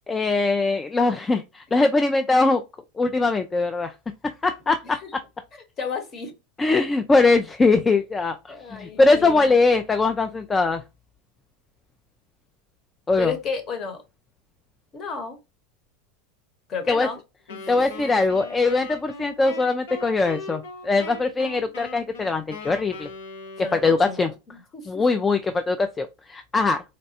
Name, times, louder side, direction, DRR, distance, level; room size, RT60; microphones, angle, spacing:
voice 1, 0.1-2.6 3.0-3.9 4.4-5.0 6.6-8.4 8.8-10.8 13.1-13.3 16.9-17.1 17.7-23.1 23.7-24.3 24.9-26.8, left 3 dB, 15° left, 0.3 m, -21 dB
voice 2, 5.8-6.3 8.5-9.5 13.2-14.0 14.9-15.4 16.7-17.2 17.5-17.7 23.6-25.0, left 5 dB, 35° left, 1.1 m, -32 dB
Wind instrument woodwind instrument, 17.5-24.3, left 3 dB, 85° left, 1.1 m, -39 dB
4.0 x 2.2 x 2.7 m
supercardioid pair, 115°, 0 cm